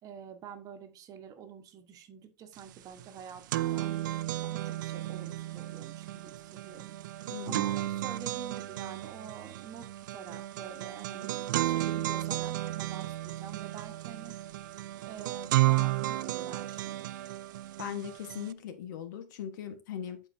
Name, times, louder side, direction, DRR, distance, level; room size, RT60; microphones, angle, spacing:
voice 1, 0.0-3.9 4.4-7.0 7.4-14.4 15.0-17.0, right 8 dB, 35° right, 1.2 m, -47 dB
sound 1, 2.6-2.7 3.0-18.5, right 15 dB, 90° right, 0.4 m, -33 dB
voice 2, 7.3-7.6 17.8-20.2, left 9 dB, 80° left, 1.3 m, -39 dB
12.0 x 4.5 x 2.7 m
supercardioid pair, 140°, 10 cm